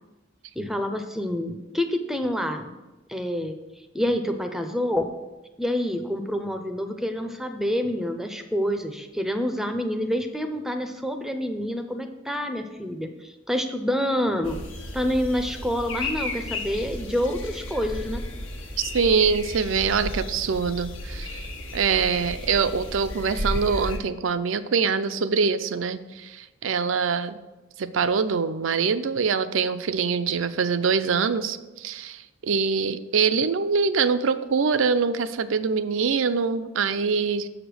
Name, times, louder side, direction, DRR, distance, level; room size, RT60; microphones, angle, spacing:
voice 1, 0.6-2.7 3.1-5.1 5.6-14.6 14.9-18.2, equal, ahead, 6 dB, 0.5 m, -27 dB
sound 1, 14.4-24.0, left 1 dB, 85° left, 1.3 m, -34 dB
voice 2, 18.8-21.4 21.7-27.4 27.8-37.5, right 5 dB, 75° right, 12 dB, 0.5 m, -24 dB
7.1 x 5.0 x 6.2 m, 1.1 s
head